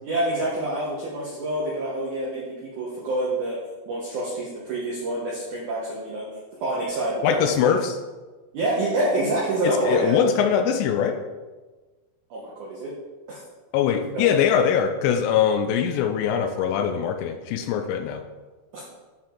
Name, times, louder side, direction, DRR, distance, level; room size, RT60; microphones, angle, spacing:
voice 1, 0.0-3.6 3.9-6.3 6.6-7.8 8.5-10.2 12.3-12.9 13.3-13.4 14.1-14.3 18.7-18.8, right 1 dB, 75° right, -5 dB, 1.8 m, -27 dB
voice 2, 7.2-8.0 9.6-11.2 13.7-18.2, left 8 dB, 85° left, 7 dB, 2.6 m, -22 dB
11.0 x 4.5 x 3.8 m, 1.3 s
omnidirectional pair, 5.2 m